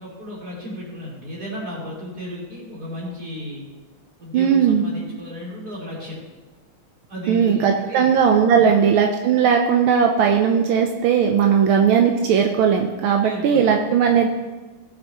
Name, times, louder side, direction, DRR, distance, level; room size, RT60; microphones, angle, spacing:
voice 1, 0.0-3.6 4.2-6.2 7.1-8.9 13.2-13.7 14.0-14.2, equal, 45° right, -6 dB, 4.1 m, -34 dB
voice 2, 4.3-4.8 7.3-14.3, right 7 dB, 85° right, 2 dB, 1.6 m, -18 dB
17.0 x 7.8 x 3.0 m, 1.2 s
omnidirectional pair, 2.2 m